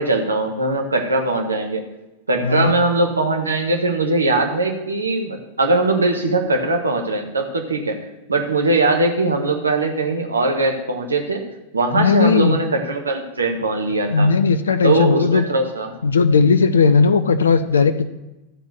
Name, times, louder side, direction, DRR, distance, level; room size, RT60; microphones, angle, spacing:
voice 1, 0.0-1.8 2.3-8.0 8.3-11.4 11.7-14.3 14.8-15.9, right 2 dB, 75° right, 3 dB, 1.4 m, -20 dB
voice 2, 2.4-2.7 11.9-12.6 14.1-15.4 16.0-18.1, left 5 dB, 70° left, 11 dB, 0.5 m, -16 dB
13.0 x 4.5 x 6.8 m, 0.97 s
figure-of-eight pair, 90°, 0 cm